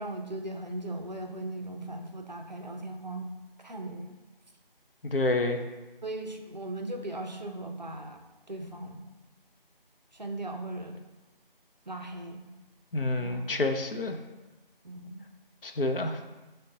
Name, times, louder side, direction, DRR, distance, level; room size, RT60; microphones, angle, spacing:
voice 1, 0.0-3.3 3.6-4.2 6.0-8.2 8.5-9.0 10.1-11.0 11.9-12.4 13.2-13.6 14.8-15.3, right 1 dB, 50° right, 3 dB, 0.4 m, -38 dB
voice 2, 5.0-5.6 12.9-14.2 15.6-16.2, left 2 dB, 70° left, 4 dB, 0.5 m, -28 dB
6.2 x 2.2 x 3.7 m, 1.1 s
figure-of-eight pair, 170°, 29 cm